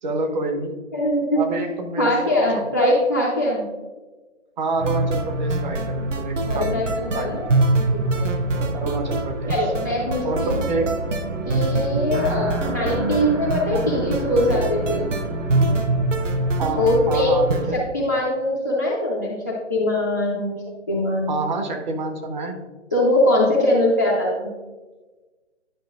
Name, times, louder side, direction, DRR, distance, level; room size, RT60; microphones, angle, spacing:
voice 1, 0.0-0.7 1.4-2.4 4.6-6.8 7.1-7.4 8.7-9.5 10.2-11.0 11.9-12.2 16.6-17.8 21.3-22.6, right 2 dB, 40° right, 4 dB, 0.9 m, -27 dB
voice 2, 0.9-1.4 2.0-3.7 6.5-7.5 7.9-8.7 9.5-10.6 11.5-15.0 16.8-17.4 17.7-20.6 20.9-21.3 22.9-24.5, left 1 dB, 15° left, -4 dB, 0.4 m, -22 dB
sound 1, 4.8-17.8, right 2 dB, 85° right, 0.8 m, -24 dB
sound 2, 10.3-15.8, right 1 dB, 65° right, 1.4 m, -31 dB
10.5 x 5.4 x 2.4 m, 1.3 s
figure-of-eight pair, 140°, 36 cm